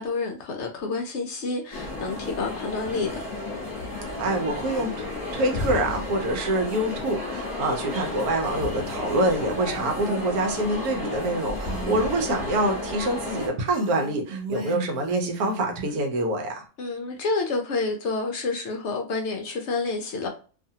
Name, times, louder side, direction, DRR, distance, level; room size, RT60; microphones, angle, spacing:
voice 1, 0.0-3.2 16.8-20.3, left 3 dB, 65° left, 0.7 m, -29 dB
sound 1, 1.7-13.5, left 2 dB, 30° left, 1.1 m, -32 dB
voice 2, 4.2-16.6, right 1 dB, 75° right, 1.1 m, -26 dB
Female speech woman speaking, 11.6-12.2 13.7-15.9, right 2 dB, 55° right, 1.0 m, -36 dB
2.7 x 2.4 x 2.7 m
omnidirectional pair, 1.6 m